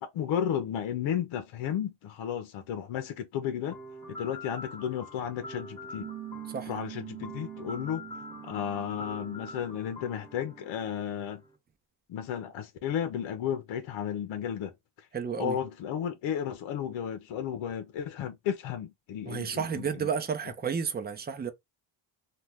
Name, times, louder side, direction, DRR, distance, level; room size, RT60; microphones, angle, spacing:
voice 1, 0.0-3.8 4.1-6.1 6.7-8.1 8.4-11.4 12.1-15.1 15.4-20.1, left 9 dB, 65° left, 0.7 m, -33 dB
sound 1, 3.7-11.6, left 1 dB, 5° left, 1.2 m, -46 dB
Piano, 6.0-11.1, right 14 dB, 80° right, 0.8 m, -45 dB
voice 2, 15.1-15.6 19.3-21.5, right 6 dB, 20° right, 0.6 m, -32 dB
2.8 x 2.2 x 3.4 m
cardioid pair, 90°, 50 cm